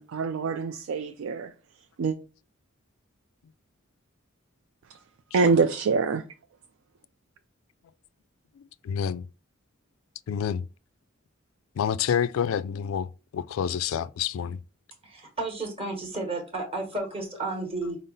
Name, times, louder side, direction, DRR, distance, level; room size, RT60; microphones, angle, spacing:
voice 1, 0.0-1.5 2.0-2.2 4.9-5.0 5.3-6.2, right 4 dB, 80° right, 0.4 m, -25 dB
voice 2, 8.6-9.2 10.3-10.6 11.8-13.1 13.3-14.6, left 8 dB, 80° left, 0.3 m, -28 dB
voice 3, 15.0-18.0, right 2 dB, 30° right, 1.2 m, -32 dB
5.3 x 2.0 x 3.9 m
head